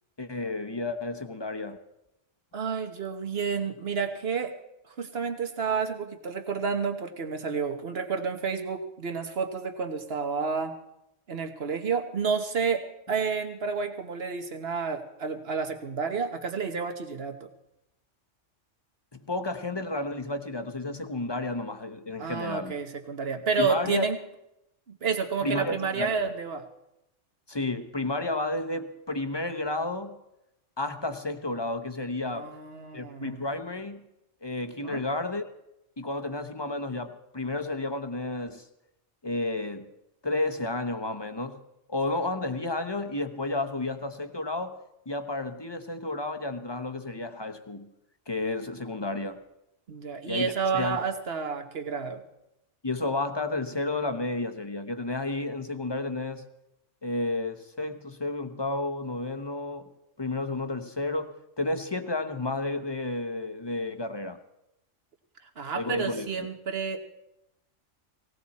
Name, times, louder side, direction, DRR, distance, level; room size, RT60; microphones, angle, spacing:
voice 1, 0.2-1.8 19.1-22.8 23.6-24.1 25.4-26.3 27.5-30.2 30.8-32.5 32.9-34.1 34.4-35.4 36.0-38.7 39.2-39.9 40.2-41.6 41.9-44.8 45.1-47.9 48.3-49.4 50.3-51.0 52.8-56.5 57.0-59.9 60.2-64.4 65.7-66.3, left 2 dB, 25° left, 8 dB, 0.9 m, -31 dB
voice 2, 2.5-4.5 4.9-10.7 11.3-12.8 13.1-17.5 22.2-24.2 24.9-26.6 32.3-33.5 34.8-35.0 49.9-52.2 65.6-67.0, right 5 dB, 55° right, 6 dB, 1.5 m, -30 dB
19.0 x 17.0 x 4.2 m, 0.88 s
omnidirectional pair, 1.2 m